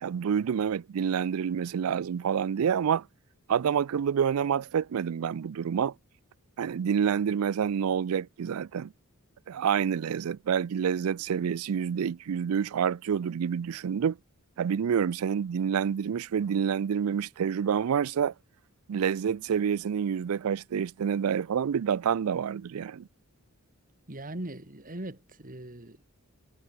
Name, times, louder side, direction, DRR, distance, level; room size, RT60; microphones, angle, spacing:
voice 1, 0.0-3.1 3.5-5.9 6.6-8.9 9.5-14.2 14.6-18.3 18.9-23.1, right 7 dB, 75° right, 0.4 m, -28 dB
voice 2, 24.1-26.0, right 1 dB, 40° right, 2.7 m, -40 dB
head